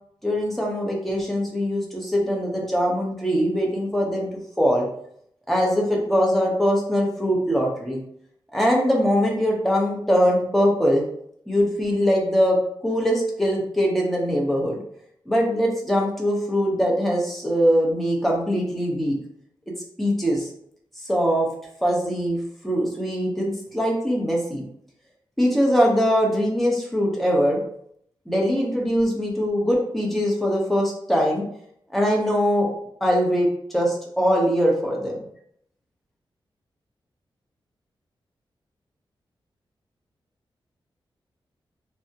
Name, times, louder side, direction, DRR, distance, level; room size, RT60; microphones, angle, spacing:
voice 1, 0.2-4.3 4.6-4.9 5.5-8.0 8.5-11.0 11.5-12.6 12.8-14.8 15.3-19.2 20.0-20.5 21.1-21.5 21.8-22.4 22.6-24.6 25.4-27.6 28.3-31.4 31.9-32.7 33.0-35.2, equal, ahead, -3 dB, 0.7 m, -22 dB
3.4 x 2.0 x 2.7 m, 0.69 s
wide cardioid pair, 135°, 9 cm